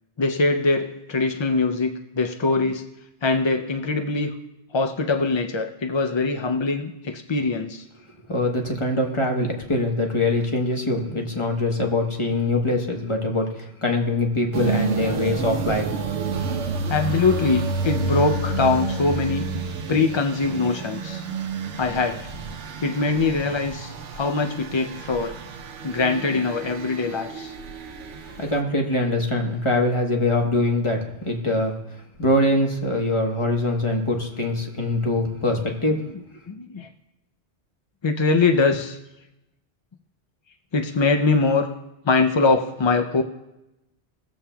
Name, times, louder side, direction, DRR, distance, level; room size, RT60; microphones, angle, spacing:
voice 1, 0.2-2.8 3.2-4.3 4.7-7.8 15.0-15.4 16.9-19.5 19.9-21.2 21.8-22.2 22.8-25.4 25.8-27.5 36.5-36.9 38.0-39.0 40.7-41.7 42.1-43.2, left 3 dB, 50° left, 5 dB, 0.3 m, -22 dB
voice 2, 8.3-15.9 28.4-31.8 32.2-36.0, left 2 dB, 30° left, 1 dB, 1.1 m, -23 dB
sound 1, 14.5-28.6, right 4 dB, 85° right, 1.0 m, -30 dB
18.0 x 7.2 x 2.2 m, 0.94 s
omnidirectional pair, 1.2 m